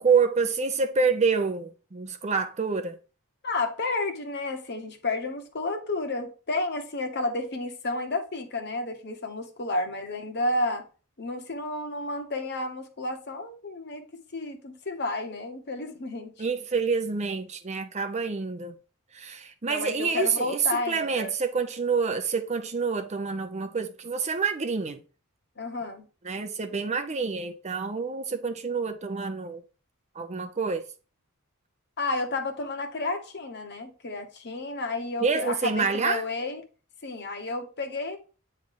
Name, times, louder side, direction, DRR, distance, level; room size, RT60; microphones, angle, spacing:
voice 1, 0.0-3.0 16.4-18.8 19.1-25.0 26.2-29.6 30.1-30.8 35.2-36.3, right 5 dB, 30° right, 0.6 m, -27 dB
voice 2, 3.4-10.9 11.2-16.3 19.7-21.3 25.6-26.1 32.0-36.6 37.0-38.2, left 2 dB, 50° left, 1.1 m, -31 dB
8.6 x 3.3 x 3.8 m
head